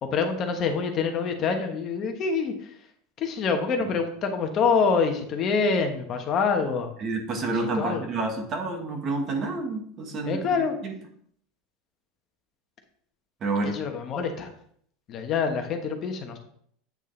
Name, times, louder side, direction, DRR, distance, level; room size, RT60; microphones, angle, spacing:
voice 1, 0.0-2.8 3.2-6.9 7.5-8.0 10.2-10.8 13.6-14.5 15.1-16.4, left 5 dB, 35° left, 5 dB, 1.2 m, -26 dB
voice 2, 7.0-11.0 13.4-13.8, right 3 dB, 30° right, 3 dB, 1.5 m, -29 dB
8.6 x 6.4 x 3.3 m, 0.64 s
supercardioid pair, 155°, 0 cm